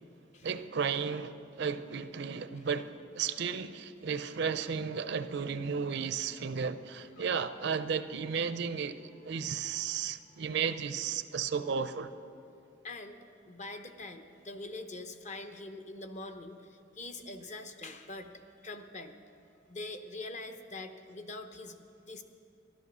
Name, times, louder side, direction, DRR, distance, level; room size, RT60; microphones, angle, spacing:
voice 1, 0.4-12.1, right 6 dB, 60° right, 0.5 m, -34 dB
voice 2, 9.6-10.4 12.8-13.2 13.5-19.2 19.7-22.2, left 2 dB, 40° left, 0.8 m, -44 dB
13.5 x 11.5 x 6.1 m
head